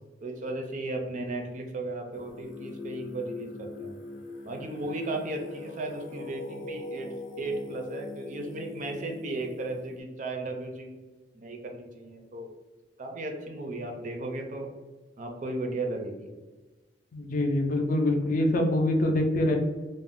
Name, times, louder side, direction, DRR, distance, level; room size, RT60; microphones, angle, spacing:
voice 1, 0.2-4.0 4.4-7.1 7.4-11.1 11.3-12.5 13.0-14.7 15.2-16.3, right 2 dB, 45° right, 3 dB, 0.4 m, -35 dB
Singing, 2.1-10.0, left 3 dB, 80° left, 0.6 m, -41 dB
voice 2, 17.1-19.6, left 1 dB, 45° left, 3 dB, 0.4 m, -25 dB
2.5 x 2.0 x 3.5 m, 1.2 s
head